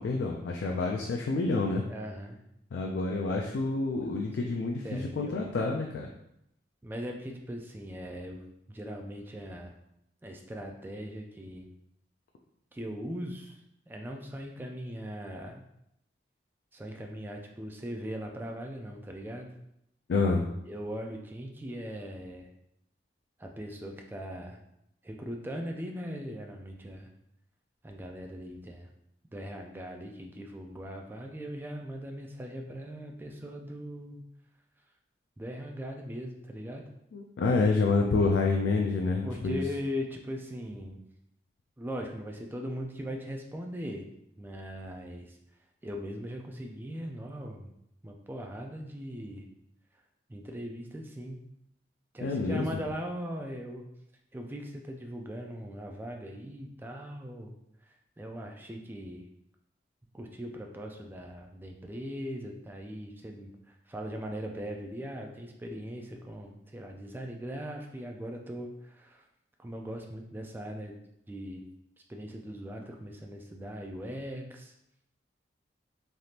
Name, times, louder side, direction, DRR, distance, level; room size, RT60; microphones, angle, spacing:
voice 1, 0.0-1.9 2.7-6.1 20.1-20.5 37.1-39.6 52.2-52.7, left 3 dB, 75° left, 1 dB, 0.3 m, -28 dB
voice 2, 1.9-2.4 4.0-4.1 4.4-5.5 6.8-9.7 10.2-11.7 12.7-15.6 16.7-19.5 20.6-22.5 23.4-24.6 25.0-27.1 27.8-28.9 29.3-34.2 35.4-36.9 39.2-41.0 41.8-44.1 44.4-45.4 45.8-47.7 48.0-49.5 50.3-51.4 52.1-53.8 54.3-57.5 58.2-59.2 60.1-69.2 69.6-71.0 71.3-71.6 72.1-74.7, equal, 10° right, 2 dB, 0.3 m, -40 dB
3.3 x 2.7 x 2.4 m, 0.79 s
head